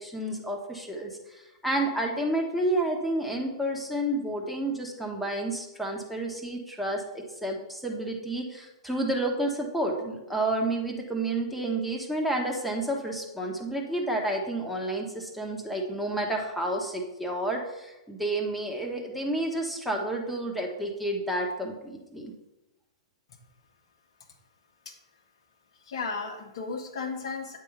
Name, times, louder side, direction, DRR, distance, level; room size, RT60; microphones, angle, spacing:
voice 1, 0.0-22.3, right 1 dB, ahead, 0 dB, 1.3 m, -30 dB
voice 2, 25.8-27.6, left 4 dB, 60° left, 3 dB, 0.9 m, -34 dB
8.9 x 3.7 x 5.6 m, 1.0 s
figure-of-eight pair, 110°, 3 cm